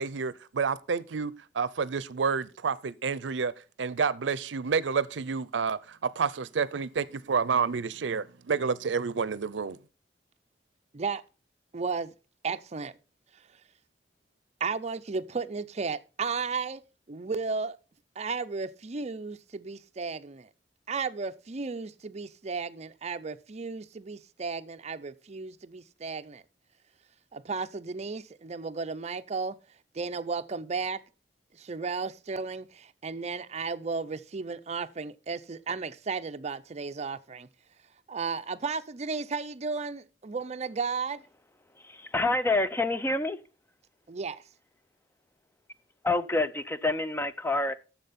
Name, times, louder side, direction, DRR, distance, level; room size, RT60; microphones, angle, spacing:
voice 1, 0.0-3.5 3.8-9.8, right 5 dB, 85° right, 0.5 m, -29 dB
voice 2, 11.7-12.1 12.4-12.9 14.6-16.8 17.1-17.8 18.2-20.5 20.9-26.4 27.3-29.6 29.9-31.0 31.5-37.5 38.1-41.2 44.1-44.4, right 4 dB, 40° right, 0.6 m, -34 dB
voice 3, 41.8-43.4 46.0-47.7, left 2 dB, 15° left, 0.5 m, -27 dB
10.5 x 7.4 x 4.2 m
head